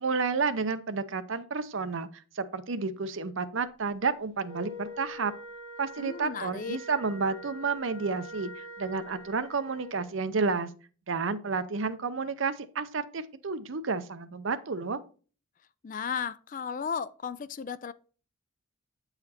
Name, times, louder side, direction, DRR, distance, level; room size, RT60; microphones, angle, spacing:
voice 1, 0.0-2.1 2.3-5.3 5.8-10.7 11.1-15.0, right 4 dB, 65° right, 0.6 m, -31 dB
Wind instrument woodwind instrument, 4.4-10.0, right 1 dB, 75° left, 1.3 m, -44 dB
voice 2, 6.0-6.8 15.8-17.9, left 6 dB, 40° left, 0.3 m, -34 dB
8.8 x 4.0 x 4.3 m
head